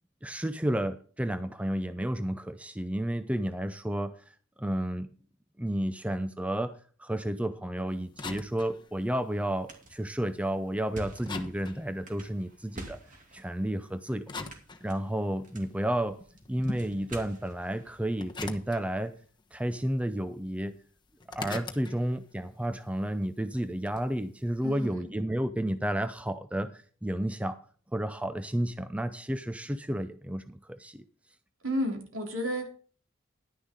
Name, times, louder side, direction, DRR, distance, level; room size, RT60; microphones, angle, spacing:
voice 1, 0.2-4.1 4.6-5.1 5.6-6.7 7.0-13.0 13.3-14.2 14.8-16.2 16.5-19.1 19.5-20.7 21.3-26.7 27.0-27.6 27.9-31.0, right 1 dB, 5° right, 11 dB, 0.5 m, -31 dB
sound 1, 7.9-10.8 11.2-13.2 13.8-15.4 15.8-19.4 19.7-20.5 20.8-24.2, left 3 dB, 20° left, 1.1 m, -43 dB
sound 2, 9.6-18.9, right 1 dB, 40° right, 2.6 m, -49 dB
voice 2, 24.6-25.1 31.6-32.7, equal, 70° right, 3 dB, 3.2 m, -32 dB
11.5 x 10.0 x 3.7 m, 0.41 s
head